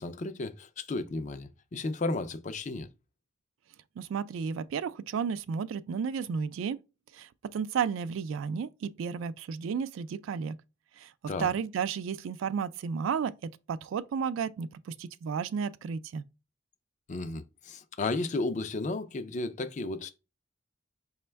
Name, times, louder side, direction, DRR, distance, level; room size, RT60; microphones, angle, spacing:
voice 1, 0.0-2.9 11.3-11.5 17.1-20.1, left 2 dB, 35° left, 0.4 m, -33 dB
voice 2, 4.0-6.8 7.1-10.6 11.0-11.1 11.4-16.2, right 6 dB, 75° right, 0.3 m, -33 dB
5.1 x 2.2 x 3.3 m
head